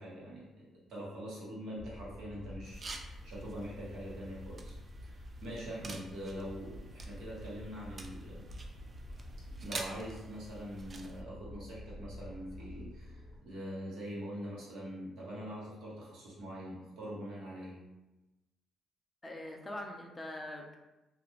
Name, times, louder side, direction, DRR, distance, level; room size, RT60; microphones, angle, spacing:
voice 1, 0.0-4.7 5.0-8.5 9.6-17.8, equal, 75° right, -6 dB, 1.1 m, -44 dB
sound 1, 1.8-13.4, left 1 dB, 65° left, 0.7 m, -48 dB
sound 2, 2.6-11.2, right 3 dB, 35° right, 0.3 m, -49 dB
voice 2, 19.2-20.8, left 1 dB, 20° left, 1 dB, 0.5 m, -43 dB
2.4 x 2.1 x 3.0 m, 1.0 s
cardioid pair, 90°, 0 cm